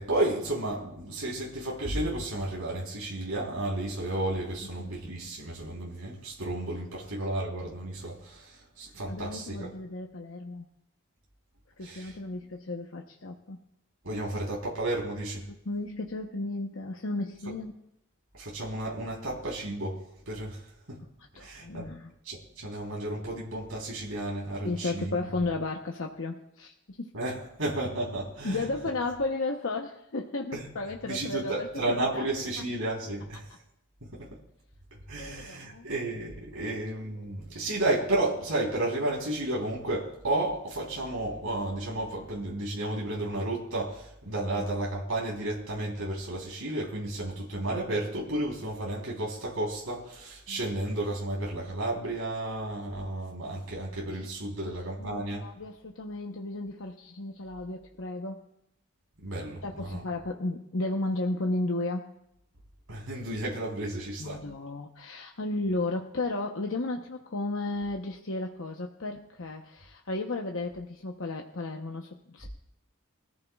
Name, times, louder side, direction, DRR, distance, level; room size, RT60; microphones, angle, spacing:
voice 1, 0.0-9.7 11.8-12.2 14.0-15.4 18.3-21.0 21.4-21.9 22.2-25.1 27.1-28.6 30.5-30.6 31.1-33.5 34.0-34.3 35.1-55.5 59.2-60.0 62.9-64.4, right 1 dB, 75° right, -4 dB, 3.6 m, -32 dB
voice 2, 9.1-10.7 11.8-13.6 15.4-17.8 21.3-22.1 24.6-27.1 28.4-32.2 35.2-35.9 36.6-36.8 37.2-37.3 50.5-50.6 54.0-54.3 55.0-58.4 59.6-62.1 64.2-72.5, left 2 dB, 60° left, 2 dB, 0.9 m, -34 dB
23.5 x 14.0 x 2.4 m, 0.81 s
head